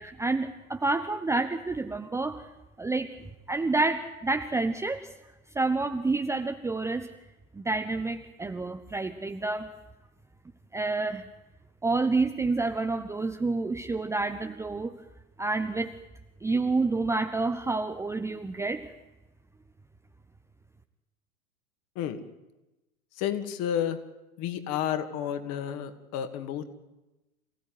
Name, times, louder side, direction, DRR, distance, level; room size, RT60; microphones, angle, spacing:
voice 1, 0.0-2.4 2.8-5.1 5.5-7.1 7.5-9.7 10.7-11.3 11.8-14.9 15.4-15.9 16.4-18.9, right 3 dB, 5° right, 6 dB, 0.9 m, -29 dB
voice 2, 23.2-24.0 24.4-26.6, left 10 dB, 35° left, 8 dB, 2.5 m, -31 dB
27.5 x 16.5 x 9.5 m, 1.0 s
figure-of-eight pair, 95°, 43 cm